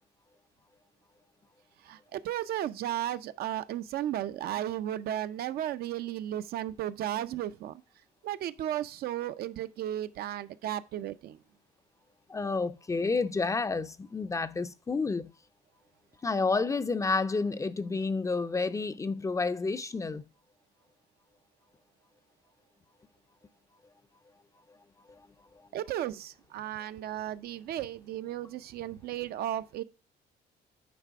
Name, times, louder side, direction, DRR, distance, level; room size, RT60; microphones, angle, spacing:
voice 1, 1.9-7.7 8.2-11.4 25.7-29.8, right 12 dB, 65° right, 0.5 m, -34 dB
voice 2, 12.3-15.3 16.2-20.2 25.1-25.2, left 4 dB, 20° left, 0.4 m, -30 dB
9.5 x 3.3 x 4.7 m
cardioid pair, 110°, 17 cm